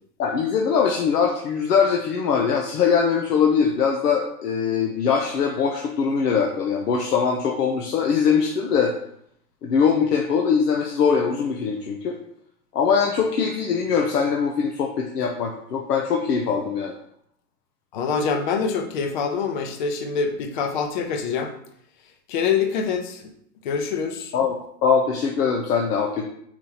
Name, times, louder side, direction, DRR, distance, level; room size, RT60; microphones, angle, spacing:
voice 1, 0.2-8.9 9.6-12.2 12.7-16.9 24.3-26.3, left 6 dB, 85° left, 1 dB, 1.1 m, -22 dB
voice 2, 17.9-21.5 22.3-23.2 23.6-24.3, left 6 dB, 30° left, 5 dB, 0.6 m, -25 dB
4.9 x 4.5 x 5.5 m, 0.71 s
supercardioid pair, 165°, 46 cm